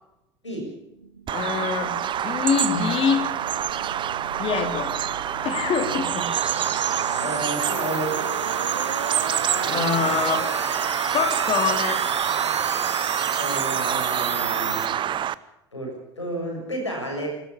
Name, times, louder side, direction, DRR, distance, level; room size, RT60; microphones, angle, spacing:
voice 1, 0.4-0.7 7.2-8.2 9.5-10.2 13.4-15.2 15.7-17.3, right 1 dB, 85° left, 1 dB, 6.8 m, -32 dB
sound 1, 0.9-14.9, right 3 dB, 90° right, 1.2 m, -34 dB
voice 2, 1.3-1.9 2.2-3.2 4.4-4.9 5.4-6.3 9.7-10.5 11.1-12.0, left 6 dB, 40° left, 6 dB, 4.1 m, -24 dB
Bird vocalization bird call bird song, 1.3-15.3, right 10 dB, 35° right, 0.8 m, -26 dB
26.0 x 14.5 x 7.0 m, 0.87 s
figure-of-eight pair, 70°, 15 cm